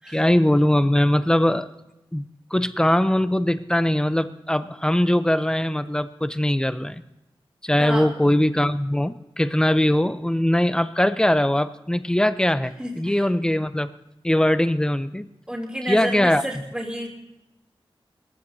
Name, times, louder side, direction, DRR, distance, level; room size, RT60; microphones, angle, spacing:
voice 1, 0.1-1.7 2.1-7.0 7.6-13.9 14.2-15.3 15.9-16.4, left 1 dB, 10° left, 12 dB, 0.6 m, -21 dB
voice 2, 7.8-8.1 12.8-13.3 15.5-17.1, equal, 10° right, -2 dB, 2.9 m, -30 dB
22.0 x 15.0 x 2.7 m, 0.95 s
wide cardioid pair, 100°, 9 cm